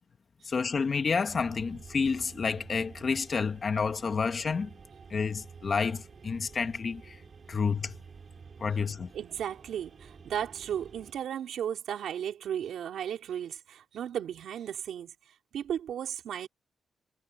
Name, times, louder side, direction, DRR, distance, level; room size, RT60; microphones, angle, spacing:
voice 1, 0.5-4.7 5.1-7.0 7.5-7.9 8.6-9.1, left 5 dB, 40° left, 1.7 m, -29 dB
sound 1, 1.3-11.1, right 5 dB, 40° right, 6.4 m, -50 dB
voice 2, 9.1-15.1 15.5-16.5, right 9 dB, 80° right, 4.4 m, -35 dB
cardioid pair, 130°, 0 cm